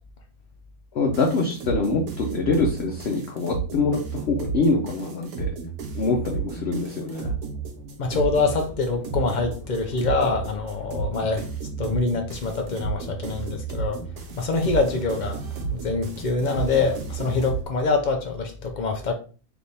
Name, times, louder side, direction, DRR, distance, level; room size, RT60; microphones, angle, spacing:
voice 1, 0.9-5.5 5.9-7.3, left 3 dB, 55° left, 0.9 m, -24 dB
sound 1, 1.1-17.6, right 5 dB, 85° right, 1.3 m, -33 dB
voice 2, 8.0-11.5 11.8-14.0 14.4-15.4 15.7-19.1, left 3 dB, 75° left, 0.4 m, -25 dB
3.5 x 3.0 x 3.9 m
omnidirectional pair, 1.5 m